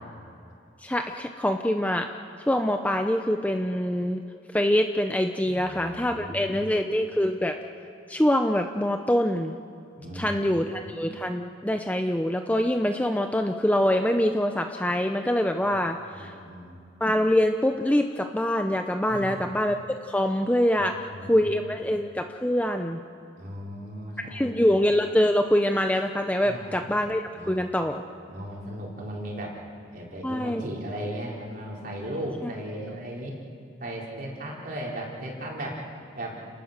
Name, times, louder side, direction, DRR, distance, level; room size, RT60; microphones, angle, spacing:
voice 1, 0.8-2.1 2.4-4.2 4.5-7.6 8.1-9.6 10.1-16.3 17.0-19.8 20.0-23.0 24.3-28.0 30.2-30.6 32.2-32.5, left 1 dB, 5° left, 5 dB, 0.6 m, -25 dB
voice 2, 5.5-6.7 10.0-10.9 15.6-15.7 16.1-16.8 19.1-19.6 20.8-21.5 23.4-24.7 26.4-26.9 27.3-27.5 28.3-29.6 29.9-33.4 33.8-35.8 36.2-36.4, right 1 dB, 45° right, -2 dB, 4.1 m, -37 dB
30.0 x 19.0 x 6.6 m, 2.6 s
head